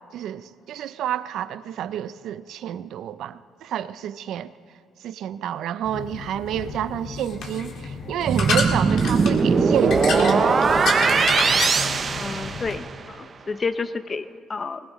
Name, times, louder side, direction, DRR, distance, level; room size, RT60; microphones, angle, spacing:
voice 1, 0.1-4.5 5.0-10.5, right 10 dB, 70° right, 14 dB, 0.5 m, -29 dB
sound 1, 5.8-12.8, left 4 dB, 65° left, 1.9 m, -30 dB
sound 2, 8.3-13.0, right 5 dB, 40° right, 0.7 m, -20 dB
voice 2, 12.1-14.8, left 4 dB, 30° left, 12 dB, 0.7 m, -30 dB
20.0 x 19.5 x 3.1 m, 2.2 s
cardioid pair, 95°, 0 cm